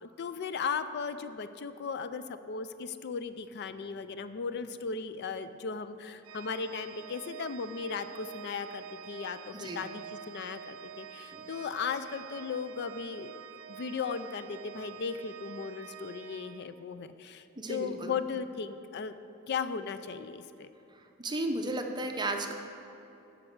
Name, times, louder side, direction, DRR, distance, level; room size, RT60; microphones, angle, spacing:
voice 1, 0.0-13.3 13.7-19.1 19.5-20.7, left 5 dB, 50° left, 11 dB, 0.4 m, -37 dB
Organ, 6.2-17.1, right 9 dB, 85° right, 0.5 m, -47 dB
voice 2, 17.6-18.1 21.2-22.5, right 2 dB, 20° right, 4 dB, 0.8 m, -34 dB
9.7 x 5.9 x 7.8 m, 2.9 s
head